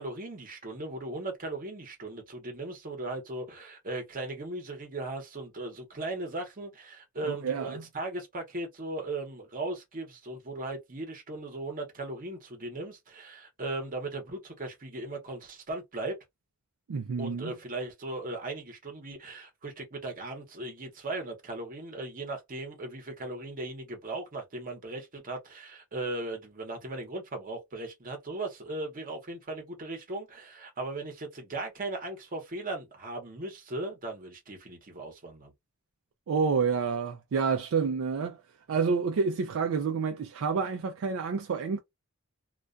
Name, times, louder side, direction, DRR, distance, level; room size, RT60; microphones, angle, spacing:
voice 1, 0.0-16.2 17.2-35.5, right 2 dB, 40° right, 0.9 m, -38 dB
voice 2, 7.2-7.8 16.9-17.5 36.3-38.4 38.7-41.8, right 5 dB, 65° right, 0.4 m, -29 dB
2.3 x 2.2 x 2.4 m
head